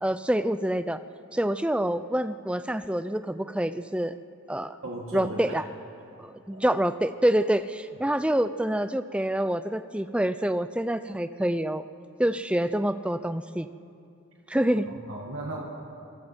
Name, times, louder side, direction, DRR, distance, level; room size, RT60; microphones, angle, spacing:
voice 1, 0.0-1.0 1.3-4.1 4.5-4.8 5.1-5.6 6.2-11.8 12.2-13.7 14.5-14.9, right 1 dB, 5° right, 12 dB, 0.4 m, -26 dB
voice 2, 4.8-5.6 6.5-6.7 14.9-15.7, right 1 dB, 90° right, -2 dB, 2.2 m, -36 dB
26.5 x 22.0 x 4.5 m, 2.6 s
head